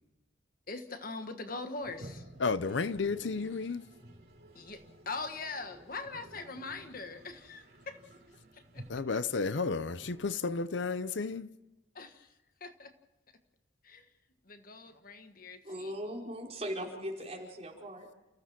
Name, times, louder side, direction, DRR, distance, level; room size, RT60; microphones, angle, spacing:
voice 1, 0.7-2.2 4.5-8.0 8.5-8.8 9.1-9.2 11.9-12.3 12.6-12.9 13.8-14.1 14.5-15.9, left 3 dB, 45° left, 1.4 m, -42 dB
Toilet flush, 1.8-10.9, right 1 dB, 50° right, 3.8 m, -53 dB
voice 2, 2.4-3.8 8.9-11.5, left 4 dB, 70° left, 0.7 m, -32 dB
voice 3, 15.6-18.2, equal, 35° right, 5.0 m, -39 dB
29.5 x 15.5 x 6.1 m
head